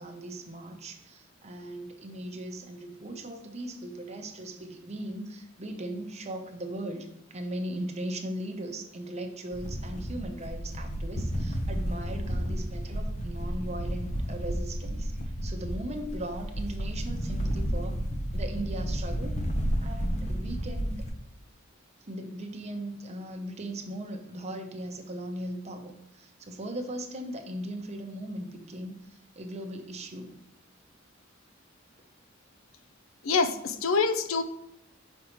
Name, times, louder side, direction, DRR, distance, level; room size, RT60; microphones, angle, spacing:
voice 1, 0.0-18.0 18.3-19.4 19.8-21.0 22.0-30.3, right 1 dB, 35° right, 4 dB, 0.8 m, -38 dB
sound 1, 9.5-21.1, equal, 35° left, 0.8 m, -32 dB
voice 2, 33.2-34.4, left 4 dB, 80° left, 10 dB, 0.6 m, -25 dB
6.3 x 5.3 x 3.0 m, 0.83 s
head